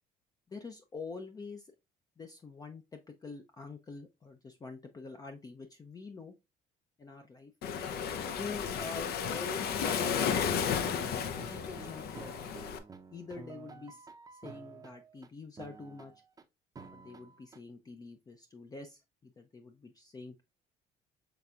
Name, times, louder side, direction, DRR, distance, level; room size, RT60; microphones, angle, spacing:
voice 1, 0.5-1.7 2.2-6.3 7.0-7.5 8.4-10.9 11.5-12.5 13.1-16.1 16.9-20.4, left 4 dB, 20° left, 5 dB, 0.5 m, -46 dB
Waves surf, 7.6-12.8, left 7 dB, 65° left, 0.7 m, -33 dB
sound 1, 9.2-15.3 15.6-16.4 16.8-17.6, right 4 dB, 20° right, 0.6 m, -51 dB
5.8 x 3.3 x 2.4 m, 0.24 s
cardioid pair, 110°, 17 cm